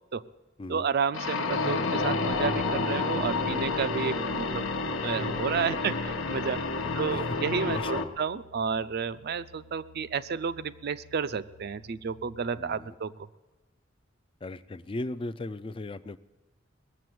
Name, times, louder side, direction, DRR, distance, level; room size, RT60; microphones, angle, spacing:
voice 1, 0.7-4.7 5.0-13.1, right 6 dB, 55° right, 14 dB, 0.5 m, -31 dB
sound 1, 1.1-8.1, left 3 dB, 90° left, 1.1 m, -29 dB
sound 2, 6.8-13.1, left 3 dB, 65° left, 0.8 m, -58 dB
voice 2, 6.8-7.4 7.7-8.1 12.6-12.9 14.4-16.2, left 2 dB, 25° left, 15 dB, 0.4 m, -37 dB
19.5 x 7.5 x 7.8 m, 1.2 s
head